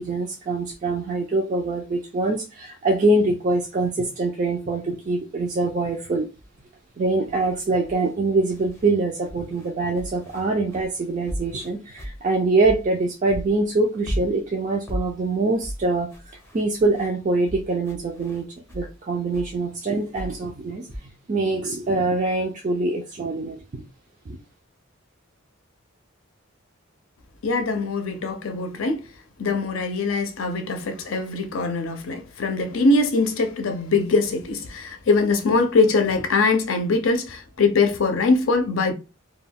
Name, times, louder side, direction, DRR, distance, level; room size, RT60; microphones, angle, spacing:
voice 1, 0.0-6.3 7.0-16.1 16.5-18.4 18.7-23.8 24.3-24.4, right 2 dB, 40° right, 0.4 m, -24 dB
sound 1, 6.4-6.6 7.2-8.9 9.2-13.0 13.3-18.9 19.3-21.0, equal, 10° left, 0.5 m, -36 dB
voice 2, 27.4-29.0 29.4-38.9, left 3 dB, 75° left, 0.5 m, -22 dB
2.2 x 2.2 x 3.4 m
head